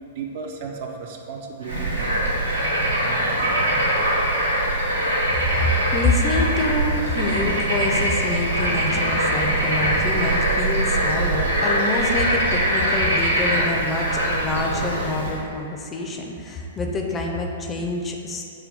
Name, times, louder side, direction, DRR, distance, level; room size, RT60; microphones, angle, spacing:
voice 1, 0.1-2.2, right 5 dB, 45° right, 2 dB, 0.4 m, -34 dB
Bird / Frog, 1.6-15.4, right 1 dB, 85° right, 0.9 m, -22 dB
voice 2, 5.6-18.4, left 2 dB, 20° left, 1 dB, 0.4 m, -26 dB
5.4 x 2.2 x 3.4 m, 2.5 s
figure-of-eight pair, 105°, 0 cm